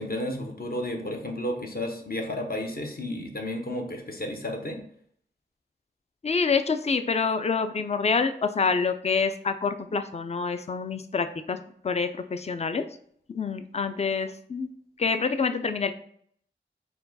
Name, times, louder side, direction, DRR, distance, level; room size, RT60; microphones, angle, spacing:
voice 1, 0.0-4.8, left 1 dB, 50° left, 3 dB, 0.9 m, -32 dB
voice 2, 6.2-11.6 11.8-12.8 13.3-14.7 15.0-15.9, left 5 dB, 35° left, 9 dB, 0.4 m, -27 dB
4.4 x 2.3 x 4.0 m, 0.62 s
cardioid pair, 40°, 19 cm